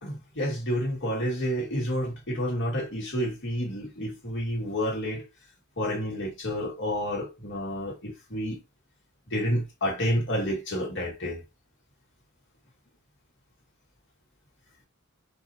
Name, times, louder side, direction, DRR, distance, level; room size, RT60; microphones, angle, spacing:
voice 1, 0.0-5.2 5.8-8.6 9.3-11.4, equal, 60° left, 1.8 m, -29 dB
4.6 x 2.7 x 4.2 m
head